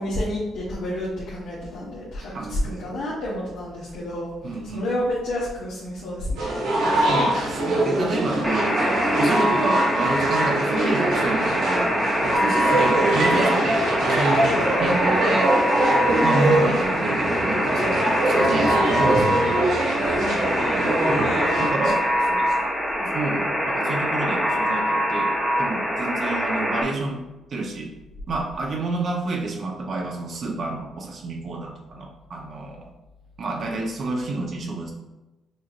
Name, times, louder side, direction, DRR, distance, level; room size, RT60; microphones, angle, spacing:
voice 1, 0.0-6.6 12.3-12.6 16.5-16.7 20.0-20.5 21.8-23.1, left 1 dB, 85° left, -9 dB, 1.2 m, -30 dB
voice 2, 2.3-2.8 4.4-4.9 6.9-11.9 12.2-15.5 16.2-19.6 21.1-22.1 23.1-25.3 25.6-27.2 27.5-27.9 28.3-32.9 33.4-34.9, right 2 dB, 55° right, 0 dB, 0.8 m, -29 dB
sound 1, 6.4-21.7, right 1 dB, 90° right, 1.2 m, -23 dB
Alarm, 8.4-26.8, equal, ahead, 0.8 m, -24 dB
6.4 x 2.8 x 2.5 m, 1.0 s
cardioid pair, 90°, 0 cm